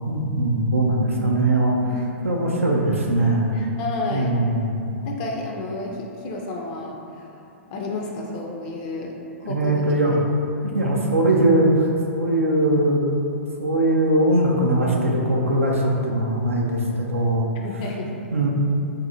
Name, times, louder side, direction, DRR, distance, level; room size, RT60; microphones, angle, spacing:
voice 1, 0.1-1.8 2.2-3.6 4.1-4.8 9.5-10.1 10.7-13.0 13.6-17.5 18.3-18.5, right 1 dB, 80° right, -2 dB, 0.4 m, -20 dB
voice 2, 3.5-4.3 5.1-7.3 7.7-9.1 9.4-9.8 17.6-18.1, left 2 dB, 35° left, 0 dB, 0.3 m, -31 dB
2.6 x 2.5 x 3.9 m, 2.7 s
figure-of-eight pair, 110°, 7 cm